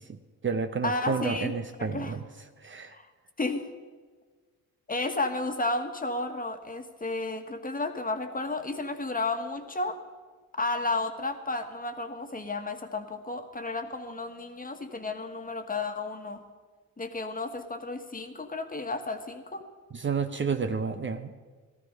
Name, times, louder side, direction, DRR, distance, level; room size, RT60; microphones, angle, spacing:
voice 1, 0.0-2.2 2.6-3.0 19.9-21.3, right 5 dB, 35° right, 8 dB, 0.8 m, -31 dB
voice 2, 0.8-1.5 1.8-2.1 2.9-3.1 3.4-3.7 4.9-10.0 10.5-16.4 17.0-19.6, left 2 dB, 25° left, 6 dB, 1.6 m, -32 dB
14.5 x 13.0 x 5.3 m, 1.4 s
supercardioid pair, 70°, 35 cm